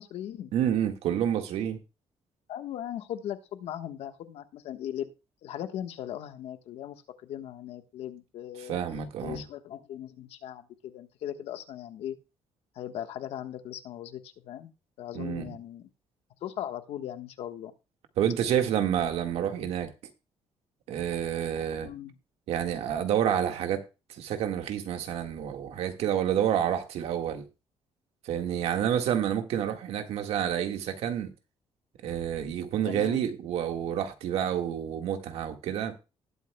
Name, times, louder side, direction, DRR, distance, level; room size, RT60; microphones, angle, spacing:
voice 1, 0.0-0.5 2.5-5.1 5.4-8.8 9.2-12.2 12.7-14.7 15.0-15.9 16.4-17.7 21.8-22.1 32.9-33.3, left 11 dB, 80° left, 1.3 m, -38 dB
voice 2, 0.5-1.8 8.6-9.4 15.1-15.6 18.2-19.9 20.9-21.9 22.5-23.8 24.1-27.4 28.2-31.3 32.0-35.9, right 9 dB, 85° right, 1.7 m, -29 dB
19.5 x 8.3 x 2.3 m
cardioid pair, 150°, 10 cm